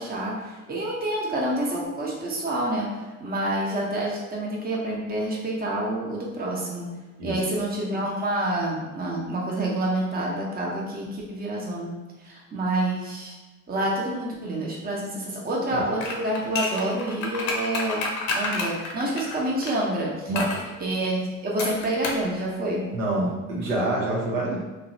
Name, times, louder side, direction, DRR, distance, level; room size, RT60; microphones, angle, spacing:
voice 1, 0.0-6.9 7.2-11.9 12.2-13.4 13.7-18.0 18.3-20.3 20.8-22.9, right 1 dB, 25° right, -3 dB, 0.7 m, -28 dB
sound 1, 16.0-19.8 20.4-20.7 21.6-22.3 22.5-22.6, left 3 dB, 80° left, 0.6 m, -29 dB
voice 2, 22.9-24.6, right 2 dB, 85° right, -3 dB, 0.7 m, -26 dB
2.6 x 2.1 x 2.6 m, 1.2 s
hypercardioid pair, 65°, 38 cm